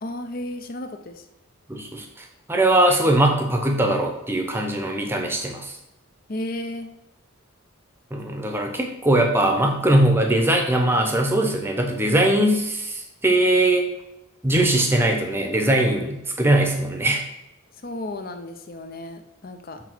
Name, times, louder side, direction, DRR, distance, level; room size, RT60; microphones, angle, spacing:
voice 1, 0.0-1.2 6.3-6.9 17.7-19.8, left 1 dB, 45° left, 7 dB, 0.6 m, -33 dB
voice 2, 1.7-5.7 8.1-13.9 14.4-17.2, right 1 dB, 10° right, 3 dB, 0.8 m, -21 dB
6.9 x 3.4 x 6.1 m, 0.89 s
head